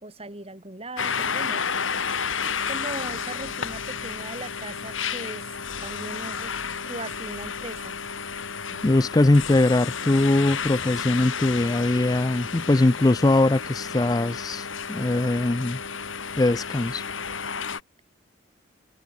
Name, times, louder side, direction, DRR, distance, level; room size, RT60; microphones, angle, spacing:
voice 1, 0.0-1.7 2.4-5.5 5.8-6.5 6.9-8.0 8.7-8.9, right 2 dB, 30° right, 4.8 m, -38 dB
sound 1, 1.0-17.8, left 6 dB, 75° left, 2.3 m, -32 dB
voice 2, 8.8-15.8 16.4-17.0, left 2 dB, 20° left, 0.4 m, -21 dB
head